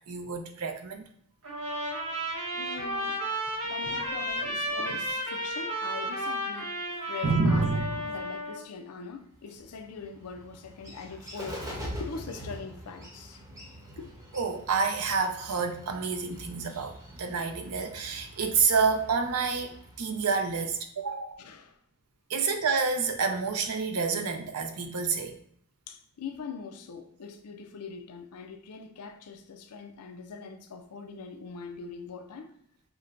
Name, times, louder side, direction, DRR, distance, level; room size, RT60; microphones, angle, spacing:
voice 1, 0.1-1.0 7.2-8.0 14.3-21.3 22.3-25.3, right 4 dB, 85° right, 4 dB, 0.6 m, -28 dB
Trumpet, 1.4-8.6, right 1 dB, 70° right, 1.3 m, -33 dB
voice 2, 2.5-3.3 3.6-13.4 14.0-14.1 21.1-21.8 22.4-22.5 25.9-32.5, left 5 dB, 90° left, 7 dB, 0.5 m, -42 dB
Bird, 9.3-20.8, equal, 15° right, 0.9 m, -44 dB
5.8 x 2.1 x 2.5 m, 0.68 s
head